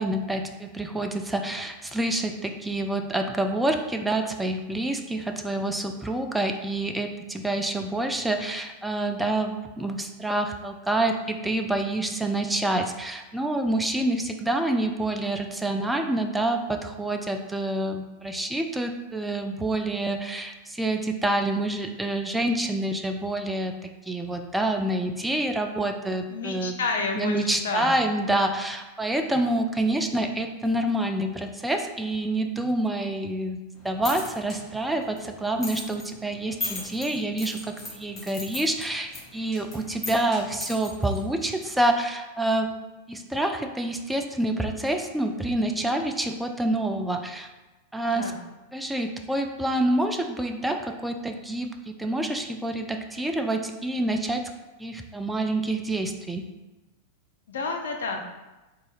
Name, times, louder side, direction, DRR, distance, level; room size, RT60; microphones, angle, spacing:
voice 1, 0.0-26.7 27.1-42.7 43.1-47.5 47.9-48.3 48.7-54.5 54.8-56.5, right 1 dB, 5° right, 5 dB, 0.3 m, -27 dB
voice 2, 26.3-28.0 48.0-48.4 57.5-58.2, left 4 dB, 65° left, 3 dB, 0.5 m, -30 dB
sound 1, 33.7-41.8, left 1 dB, 20° left, 1.4 m, -39 dB
3.8 x 2.8 x 3.8 m, 1.1 s
figure-of-eight pair, 90°, 0 cm